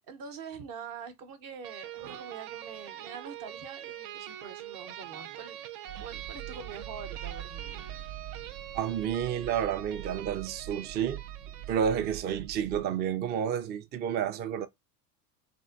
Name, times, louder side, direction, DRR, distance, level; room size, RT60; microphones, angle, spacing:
voice 1, 0.1-5.6 6.0-7.8, right 6 dB, 45° right, 0.8 m, -45 dB
sound 1, 1.6-12.4, right 11 dB, 70° right, 0.6 m, -44 dB
sound 2, 5.9-12.8, right 12 dB, 90° right, 0.9 m, -44 dB
voice 2, 8.7-11.2 11.7-14.7, right 8 dB, 25° right, 0.3 m, -30 dB
3.5 x 2.6 x 2.4 m
hypercardioid pair, 90°, 47 cm